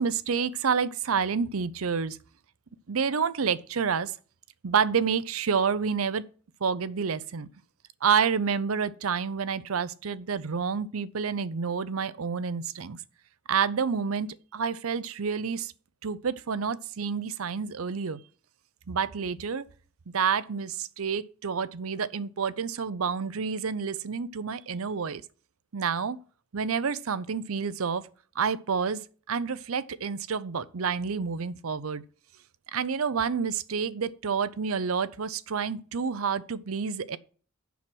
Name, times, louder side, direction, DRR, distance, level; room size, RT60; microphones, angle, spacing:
voice 1, 0.0-2.2 2.9-4.1 4.6-6.2 6.6-7.5 8.0-13.0 13.5-15.7 16.0-18.2 18.9-19.6 20.1-25.2 25.7-26.2 26.5-28.1 28.4-29.0 29.3-32.0 32.7-37.2, right 6 dB, 75° right, 0.6 m, -29 dB
7.1 x 6.1 x 7.7 m
head